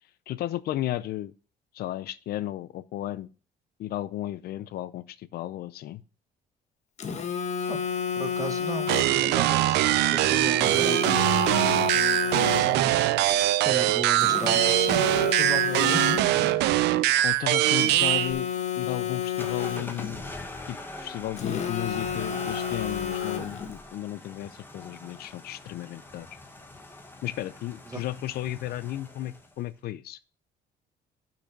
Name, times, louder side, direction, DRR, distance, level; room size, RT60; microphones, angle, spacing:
voice 1, 0.3-1.3 1.7-3.3 3.8-6.0 17.2-18.5 18.8-20.2 20.7-26.3 27.2-30.2, left 13 dB, 65° left, 0.6 m, -34 dB
Telephone, 7.0-9.3 10.6-13.0 14.2-16.5 17.8-20.2 21.4-23.7, left 7 dB, 40° left, 1.3 m, -31 dB
voice 2, 8.2-9.8 10.1-11.3 11.9-13.0 13.6-15.1 15.4-16.2 27.9-28.0, right 2 dB, 20° right, 1.1 m, -35 dB
sound 1, 8.9-18.3, right 14 dB, 85° right, 0.6 m, -22 dB
sound 2, 19.4-29.6, left 2 dB, 10° left, 1.6 m, -43 dB
6.5 x 5.9 x 5.9 m
cardioid pair, 110°, 17 cm